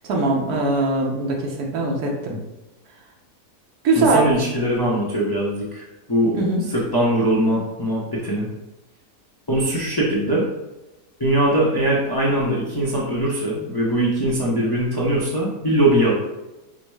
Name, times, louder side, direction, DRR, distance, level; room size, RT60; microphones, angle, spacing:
voice 1, 0.1-2.4 3.8-4.2 6.4-6.6, right 2 dB, 65° right, -1 dB, 1.4 m, -21 dB
voice 2, 4.0-6.3 6.7-8.5 9.5-10.4 11.2-16.1, right 1 dB, 25° left, -6 dB, 0.5 m, -21 dB
5.0 x 2.1 x 4.7 m, 1.0 s
omnidirectional pair, 1.8 m